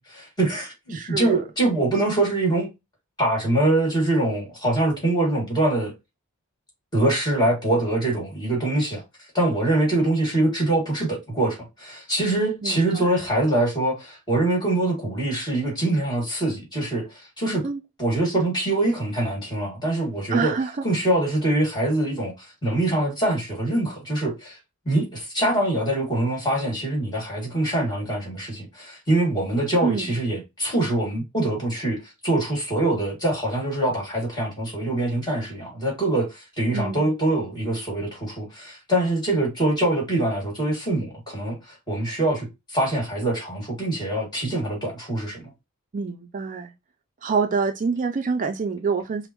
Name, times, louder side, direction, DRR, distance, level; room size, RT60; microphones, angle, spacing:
voice 1, 0.1-2.7 3.2-5.9 6.9-9.0 9.3-17.7 18.0-20.5 20.8-24.6 24.9-41.6 41.9-42.5 42.7-45.4, right 1 dB, 20° left, 1.8 m, -24 dB
voice 2, 0.9-1.4 12.6-13.1 17.6-17.8 20.3-20.7 29.8-30.1 36.7-37.1 45.9-46.7 47.2-49.3, right 5 dB, 35° right, 0.4 m, -26 dB
5.1 x 2.1 x 2.9 m
head